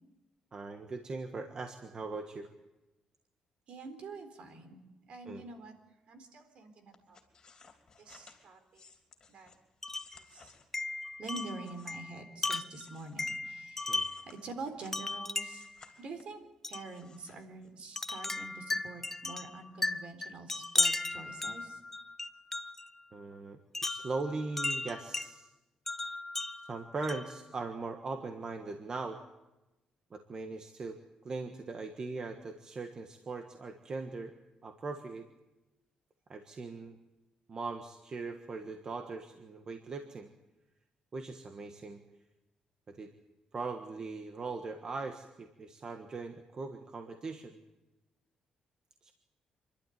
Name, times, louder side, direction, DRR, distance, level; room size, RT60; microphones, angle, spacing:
voice 1, 0.5-2.5 5.2-5.5 13.9-14.0 23.1-25.5 26.7-29.2 30.1-31.0 31.2-34.3 34.6-35.3 36.3-37.0 37.5-40.3 41.1-42.0 42.9-43.1 43.5-47.6 49.0-49.1, right 3 dB, 35° right, 5 dB, 1.5 m, -40 dB
voice 2, 3.7-5.7 6.1-7.2 8.0-8.8 9.3-9.5 10.1-10.5 11.2-15.7 16.0-16.4 16.7-21.8, right 3 dB, 60° right, 7 dB, 3.9 m, -46 dB
sound 1, 6.9-12.2 12.6-15.1 15.4-16.4 16.8-17.9 18.2-18.3, left 5 dB, 35° left, 3.2 m, -59 dB
Wind chime, 9.8-10.2 10.7-14.3 14.9-15.7 16.6-16.9 18.0-22.9 23.7-25.3 25.9-27.4, left 2 dB, 15° left, 0.7 m, -36 dB
27.0 x 12.0 x 9.4 m, 1.0 s
cardioid pair, 120°, 2 cm